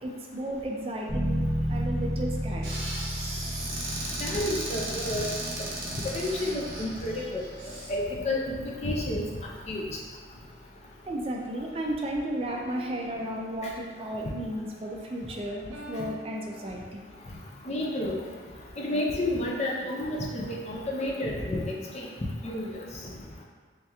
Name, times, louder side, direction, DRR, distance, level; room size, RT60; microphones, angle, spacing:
voice 1, 0.0-2.8 11.1-17.0, right 1 dB, 30° right, 0 dB, 0.4 m, -34 dB
sound 1, 1.1-11.6, equal, 15° right, 1.1 m, -34 dB
Squeak / Cupboard open or close, 2.6-7.9, right 1 dB, 55° right, 1.0 m, -36 dB
voice 2, 4.2-5.3 6.1-7.5 7.9-9.2 9.7-10.0 17.7-18.2 18.8-22.1 22.4-22.9, left 1 dB, 35° left, -2 dB, 0.5 m, -30 dB
sound 2, 12.5-14.0 15.7-17.2, equal, 80° right, 0.6 m, -47 dB
3.2 x 2.9 x 3.4 m, 1.5 s
head